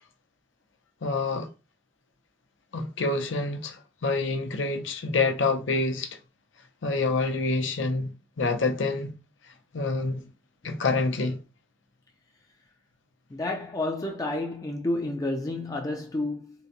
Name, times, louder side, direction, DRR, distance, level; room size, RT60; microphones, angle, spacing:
voice 1, 1.0-1.5 2.7-6.2 6.8-8.1 8.4-9.1 9.7-10.2 10.6-11.4, left 3 dB, 75° left, 0.6 m, -27 dB
voice 2, 13.3-16.5, left 2 dB, 20° left, 0.4 m, -30 dB
3.8 x 2.1 x 2.8 m
head